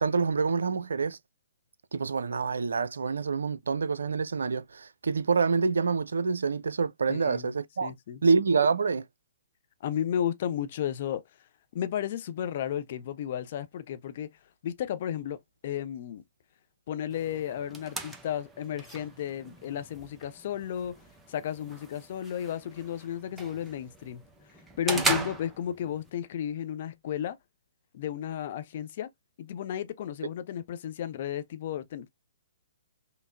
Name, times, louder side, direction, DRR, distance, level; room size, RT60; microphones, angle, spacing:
voice 1, 0.0-1.2 1.9-7.9 8.2-9.1 24.9-25.2, right 5 dB, 65° right, 0.4 m, -27 dB
voice 2, 7.1-7.5 7.8-8.2 9.8-11.2 11.7-14.3 14.6-16.2 16.9-21.0 21.3-24.2 24.8-27.4 27.9-29.1 29.4-32.1, left 9 dB, 45° left, 0.5 m, -33 dB
sound 1, 17.1-26.1, right 2 dB, 10° right, 0.6 m, -38 dB
5.5 x 2.0 x 2.3 m
figure-of-eight pair, 125°, 0 cm